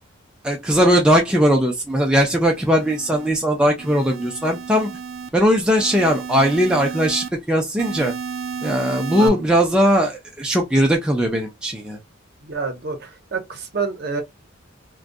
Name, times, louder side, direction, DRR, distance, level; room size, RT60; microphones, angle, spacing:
voice 1, 0.4-4.9 5.3-8.1 8.6-12.0, equal, 5° right, 0.4 m, -19 dB
sound 1, 2.2-3.3 3.8-5.3 5.8-7.3 7.8-9.3, right 6 dB, 85° right, 0.5 m, -32 dB
voice 2, 12.4-14.2, right 4 dB, 50° right, 0.7 m, -28 dB
2.5 x 2.2 x 2.5 m
head